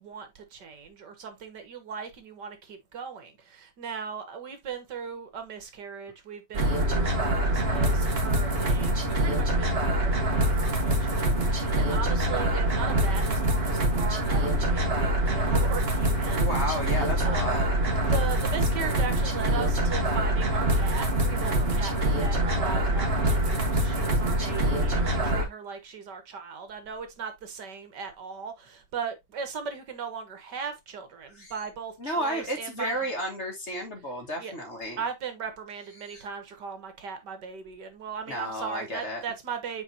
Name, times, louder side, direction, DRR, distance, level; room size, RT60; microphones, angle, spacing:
voice 1, 0.0-16.5 17.2-17.5 18.1-33.0 34.4-34.5 35.0-39.8, right 6 dB, 75° right, 2.0 m, -38 dB
sound 1, 6.5-25.5, right 1 dB, 35° right, 1.8 m, -25 dB
voice 2, 16.3-17.7 24.4-25.0 31.3-31.5 32.0-35.0 36.0-36.3 38.3-39.2, equal, 40° left, 2.3 m, -33 dB
8.2 x 4.7 x 2.9 m
omnidirectional pair, 1.9 m